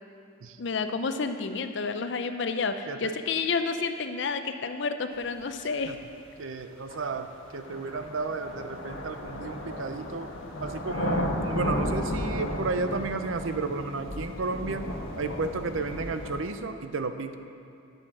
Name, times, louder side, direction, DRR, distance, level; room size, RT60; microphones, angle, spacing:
voice 1, 0.6-6.0, left 4 dB, 60° left, 8 dB, 0.5 m, -30 dB
sound 1, 5.8-5.9 6.9-16.4, left 1 dB, 85° left, 1.3 m, -34 dB
voice 2, 6.4-10.3 10.6-14.8 15.2-17.3, right 3 dB, 75° right, 9 dB, 0.6 m, -32 dB
9.9 x 6.6 x 6.0 m, 2.5 s
head